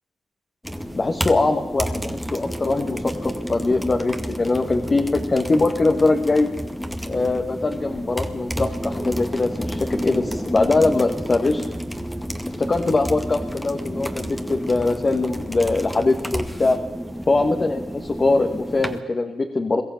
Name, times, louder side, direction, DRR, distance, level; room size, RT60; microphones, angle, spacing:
sound 1, 0.6-19.0, equal, ahead, 2.1 m, -30 dB
voice 1, 0.9-6.5 7.1-11.6 12.6-16.8 17.3-19.8, left 3 dB, 40° left, 3 dB, 2.2 m, -22 dB
22.5 x 14.5 x 9.0 m, 1.1 s
supercardioid pair, 45°, 0 cm